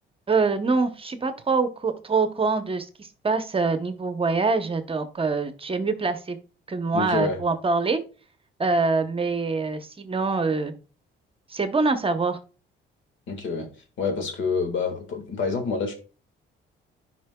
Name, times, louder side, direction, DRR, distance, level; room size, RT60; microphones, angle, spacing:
voice 1, 0.3-6.4 6.7-8.0 8.6-10.7 11.5-12.4, right 4 dB, 30° right, 0.8 m, -24 dB
voice 2, 6.9-7.4 13.3-13.7 14.0-15.9, left 4 dB, 70° left, 1.7 m, -27 dB
10.0 x 5.1 x 2.2 m
cardioid pair, 90°, 20 cm